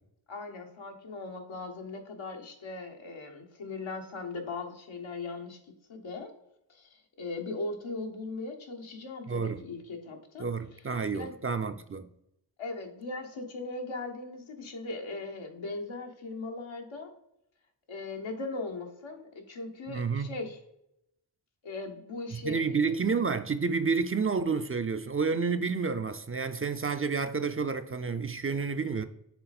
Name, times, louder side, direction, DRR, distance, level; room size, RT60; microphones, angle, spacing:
voice 1, 0.3-5.6 5.9-6.3 6.7-10.5 11.1-11.3 12.6-17.1 17.9-20.6 21.6-22.9, left 3 dB, 85° left, 1.3 m, -39 dB
voice 2, 9.3-9.6 10.4-12.1 19.9-20.3 22.3-29.0, right 5 dB, 30° right, 0.5 m, -30 dB
6.9 x 3.6 x 4.0 m
cardioid pair, 55°, 46 cm